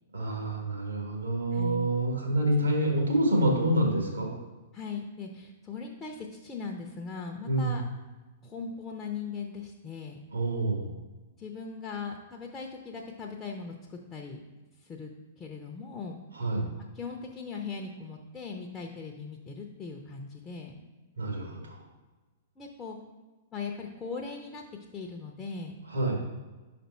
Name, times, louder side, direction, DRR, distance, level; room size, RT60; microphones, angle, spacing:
voice 1, 0.1-4.3 7.5-7.7 10.3-10.9 16.3-16.7 21.2-21.8 25.9-26.2, right 1 dB, 75° right, 0 dB, 1.5 m, -27 dB
voice 2, 1.5-1.9 4.7-7.8 8.4-10.2 11.4-14.4 14.8-15.1 15.4-16.2 16.9-20.7 22.6-23.0 23.5-24.6 24.9-25.8, left 5 dB, 20° left, 0 dB, 0.6 m, -39 dB
5.3 x 4.3 x 4.3 m, 1.2 s
figure-of-eight pair, 105°, 0 cm